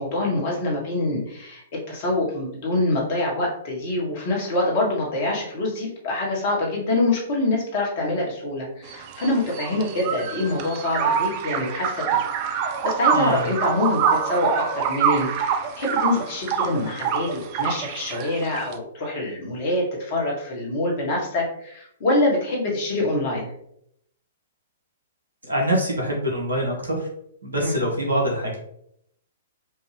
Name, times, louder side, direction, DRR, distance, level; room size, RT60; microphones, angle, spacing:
voice 1, 0.0-12.2 12.5-23.5 27.6-27.7, left 2 dB, 45° left, -2 dB, 1.5 m, -25 dB
sound 1, 8.9-18.7, right 7 dB, 40° right, 0.4 m, -25 dB
voice 2, 13.1-13.5 25.5-27.1 27.4-28.6, equal, 80° right, -3 dB, 1.5 m, -24 dB
4.5 x 2.5 x 3.3 m, 0.73 s
figure-of-eight pair, 115°, 0 cm